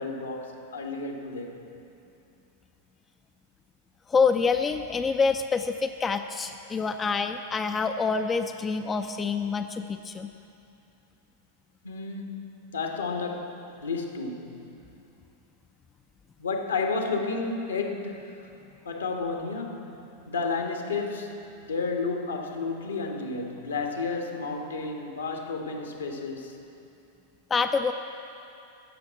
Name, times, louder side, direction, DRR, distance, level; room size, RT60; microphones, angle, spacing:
voice 1, 0.0-1.6 11.8-12.4 12.7-14.6 16.4-18.4 18.8-19.9 20.3-21.3 21.6-26.6, left 4 dB, 75° left, 3 dB, 1.4 m, -31 dB
voice 2, 4.1-10.3 27.5-27.9, left 5 dB, 20° left, 7 dB, 0.4 m, -26 dB
15.5 x 6.8 x 7.6 m, 2.8 s
figure-of-eight pair, 90°, 0 cm